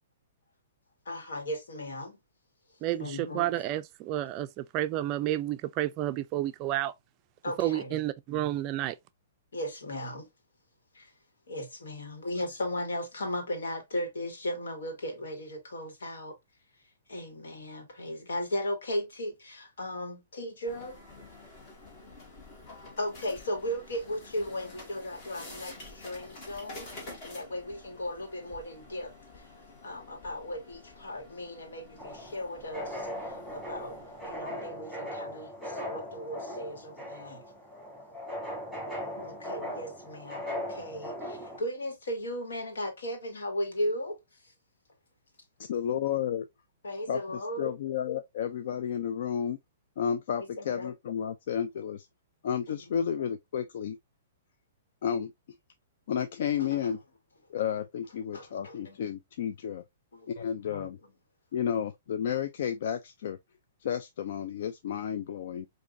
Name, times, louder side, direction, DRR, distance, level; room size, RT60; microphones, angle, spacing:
voice 1, 1.0-2.2 3.0-3.5 7.4-8.0 9.5-10.3 10.9-11.1 11.5-16.4 17.1-21.0 23.0-29.5 29.8-33.1 33.5-37.4 39.2-44.2 46.8-47.7 50.6-50.9 52.7-52.8 56.6-56.9 58.3-59.0 60.1-60.9, left 1 dB, 90° left, 1.5 m, -36 dB
voice 2, 2.8-6.9 7.6-9.0, right 13 dB, 30° right, 0.3 m, -30 dB
sound 1, 20.7-34.6, left 2 dB, 35° left, 1.8 m, -49 dB
sound 2, 32.0-41.6, left 1 dB, 5° left, 2.8 m, -39 dB
voice 3, 45.7-46.5 47.1-49.6 50.0-52.1 52.4-54.0 55.0-55.3 56.1-57.0 57.5-59.8 60.4-61.0 61.5-63.4 63.8-65.7, left 8 dB, 60° left, 0.4 m, -32 dB
5.0 x 2.6 x 2.5 m
hypercardioid pair, 150°, 0 cm